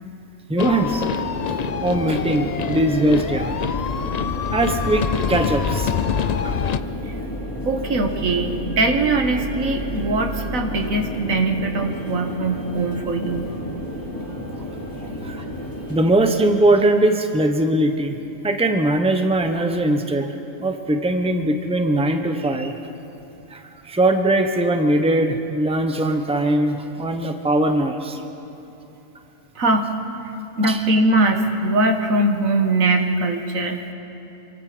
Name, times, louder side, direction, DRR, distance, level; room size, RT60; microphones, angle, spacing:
voice 1, 0.5-1.1 1.8-3.6 4.5-5.9 6.4-6.6 15.2-15.4 15.9-18.2 18.4-20.3 20.6-22.7 23.5-28.2 30.6-30.8, right 1 dB, 5° right, 5 dB, 1.1 m, -20 dB
sound 1, 0.6-6.8, left 7 dB, 65° left, 0.4 m, -26 dB
sound 2, 0.7-16.1, equal, 15° left, 3.1 m, -31 dB
voice 2, 7.7-13.5 15.0-15.1 29.6-29.9 30.6-33.8, right 2 dB, 75° right, 5 dB, 1.9 m, -21 dB
26.5 x 24.5 x 5.2 m, 3.0 s
omnidirectional pair, 1.4 m